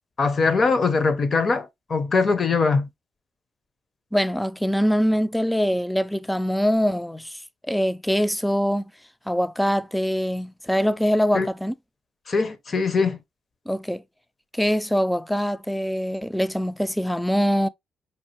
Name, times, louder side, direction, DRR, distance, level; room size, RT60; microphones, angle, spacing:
voice 1, 0.2-2.9 11.3-11.5 12.3-13.2, left 4 dB, 40° left, 0.7 m, -21 dB
voice 2, 4.1-7.4 7.7-8.8 9.3-11.7 13.7-14.0 14.5-17.7, equal, 5° left, 0.3 m, -23 dB
5.4 x 2.4 x 2.8 m
cardioid pair, 90°, 0 cm